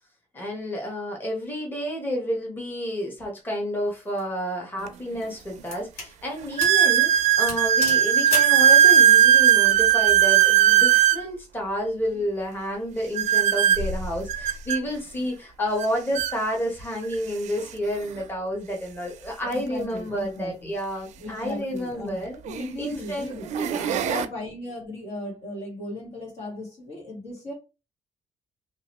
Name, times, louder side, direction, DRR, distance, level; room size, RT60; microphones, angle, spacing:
voice 1, 0.3-22.4 22.8-24.1, equal, 15° left, 1.1 m, -30 dB
sound 1, 3.9-4.2 4.9-6.1 6.6-6.8 7.1-7.2 7.5-8.6, left 2 dB, 85° left, 1.5 m, -34 dB
sound 2, 4.9-5.0 5.6-5.7 6.6-11.2 13.2-14.8 15.8-15.9 16.2-16.3 17.1-17.2 19.4-19.5 21.6-21.7 22.5-22.8 23.3-24.3, right 10 dB, 75° right, 0.4 m, -18 dB
voice 2, 19.5-20.7 21.2-23.5 23.8-27.5, left 2 dB, 65° left, 1.7 m, -36 dB
2.9 x 2.5 x 3.0 m
cardioid pair, 115°, 12 cm